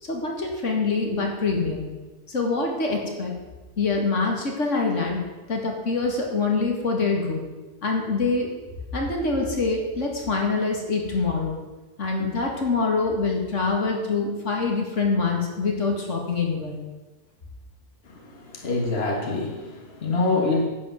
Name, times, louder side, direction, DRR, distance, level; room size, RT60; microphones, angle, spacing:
voice 1, 0.0-1.8 2.3-3.3 3.8-5.2 5.5-7.4 7.8-8.5 8.9-11.6 12.0-16.8, left 4 dB, 85° left, 1 dB, 2.5 m, -25 dB
voice 2, 18.1-20.6, left 3 dB, 55° left, 1 dB, 1.9 m, -26 dB
11.0 x 8.7 x 7.4 m, 1.2 s
omnidirectional pair, 1.2 m